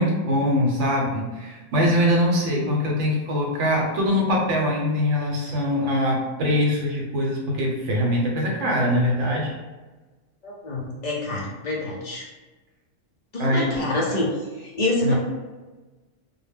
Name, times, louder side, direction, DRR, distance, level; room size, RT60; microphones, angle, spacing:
voice 1, 0.0-9.5 13.4-13.7 15.0-15.1, equal, 80° right, -2 dB, 1.0 m, -22 dB
voice 2, 10.4-12.3 13.3-14.3 14.6-15.1, left 2 dB, 55° left, -3 dB, 0.5 m, -26 dB
2.1 x 2.1 x 3.4 m, 1.2 s
omnidirectional pair, 1.2 m